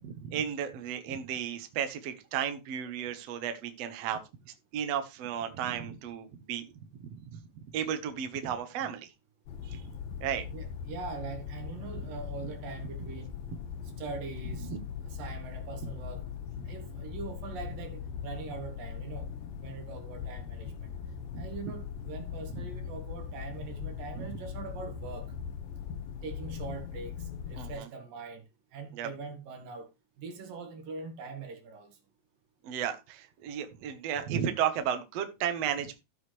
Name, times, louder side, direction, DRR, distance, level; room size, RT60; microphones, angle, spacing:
voice 1, 0.0-6.7 7.1-7.4 7.7-9.1 9.6-9.8 10.2-10.4 14.6-14.8 21.3-21.7 24.2-24.3 27.6-27.9 28.9-29.1 32.6-36.0, right 9 dB, 60° right, 2.0 m, -34 dB
sound 1, 9.5-27.7, left 7 dB, 85° left, 2.8 m, -40 dB
voice 2, 10.5-13.3 14.0-14.7 15.1-16.2 16.7-19.3 19.6-20.9 21.4-25.3 26.2-27.1 27.5-28.4 28.7-29.9 30.2-31.9, right 4 dB, 85° right, 3.7 m, -42 dB
14.0 x 7.3 x 3.2 m
omnidirectional pair, 3.9 m